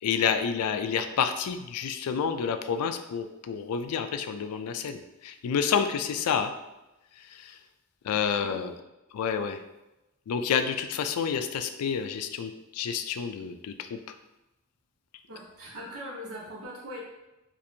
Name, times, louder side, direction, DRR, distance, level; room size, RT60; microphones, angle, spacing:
voice 1, 0.0-6.5 7.2-7.6 8.0-8.7 9.1-9.6 10.3-14.0, left 7 dB, 90° left, 9 dB, 0.3 m, -29 dB
voice 2, 15.3-17.0, equal, 75° right, -5 dB, 1.1 m, -40 dB
4.3 x 2.5 x 2.6 m, 0.97 s
head